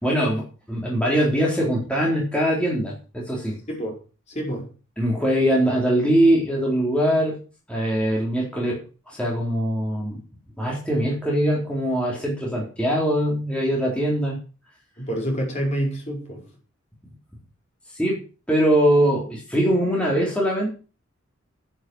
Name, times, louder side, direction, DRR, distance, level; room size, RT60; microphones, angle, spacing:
voice 1, 0.0-3.6 5.0-7.4 7.7-8.8 9.1-10.2 10.6-14.4 17.9-18.2 18.5-20.7, equal, 5° left, 4.0 m, -22 dB
voice 2, 3.7-4.0 4.3-4.7 15.0-16.4, right 1 dB, 35° left, 4.8 m, -27 dB
10.0 x 10.0 x 6.4 m
head